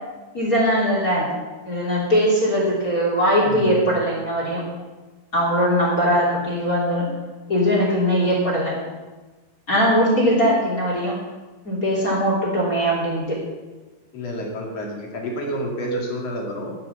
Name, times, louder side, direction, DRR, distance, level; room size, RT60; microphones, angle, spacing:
voice 1, 0.3-1.3 1.6-4.6 5.3-7.1 7.5-8.7 9.7-11.1 11.6-13.4, equal, 25° left, -4 dB, 3.1 m, -20 dB
voice 2, 3.4-4.0 14.1-16.7, equal, 45° left, -1 dB, 3.2 m, -29 dB
10.0 x 10.0 x 6.9 m, 1.2 s
omnidirectional pair, 4.4 m